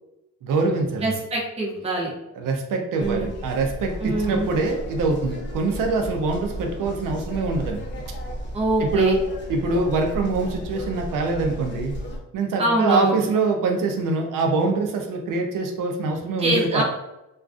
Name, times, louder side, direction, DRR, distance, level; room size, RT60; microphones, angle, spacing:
voice 1, 0.4-1.1 2.4-7.8 8.8-9.2 9.5-12.0 12.3-16.8, right 3 dB, 85° right, 3 dB, 0.5 m, -24 dB
voice 2, 1.0-2.1 3.0-3.3 4.0-4.5 8.5-9.2 12.6-13.3 16.4-16.8, right 2 dB, 20° right, -3 dB, 0.6 m, -23 dB
sound 1, 3.0-12.2, equal, 35° left, 0.5 m, -34 dB
2.4 x 2.2 x 2.3 m, 0.90 s
cardioid pair, 100°, 31 cm